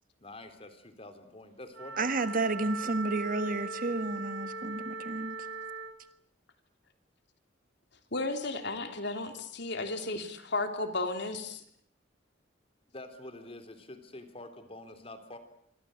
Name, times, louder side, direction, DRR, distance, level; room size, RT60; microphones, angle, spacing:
voice 1, 0.2-2.4 12.9-15.4, left 1 dB, 30° left, 3.7 m, -47 dB
Wind instrument woodwind instrument, 1.7-6.0, right 4 dB, 85° right, 3.4 m, -39 dB
voice 2, 2.0-5.3, right 2 dB, 45° right, 1.6 m, -31 dB
voice 3, 8.1-11.6, left 2 dB, 65° left, 3.4 m, -34 dB
27.0 x 24.5 x 8.0 m
head